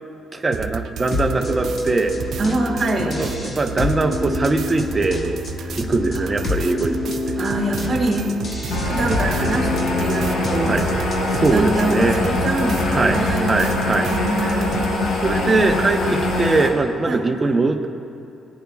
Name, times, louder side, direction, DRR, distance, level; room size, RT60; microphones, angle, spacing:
voice 1, 0.3-2.1 3.0-5.4 5.8-7.4 10.7-10.9 11.3-12.2 12.9-14.1 14.4-14.6 15.2-17.9, right 3 dB, 25° right, 5 dB, 0.9 m, -21 dB
sound 1, 0.5-14.9, right 7 dB, 65° right, 0.4 m, -32 dB
sound 2, 1.1-11.8, left 2 dB, 50° left, 1.7 m, -28 dB
voice 2, 2.4-3.2 5.6-5.7 6.1-6.6 7.4-8.4 8.8-9.7 10.0-10.8 11.5-13.7 14.1-15.2 17.1-17.3, right 2 dB, 45° right, 2 dB, 1.7 m, -24 dB
sound 3, 8.7-16.7, left 2 dB, 75° left, 1.4 m, -23 dB
17.5 x 9.7 x 2.4 m, 2.8 s
cardioid pair, 90°, 0 cm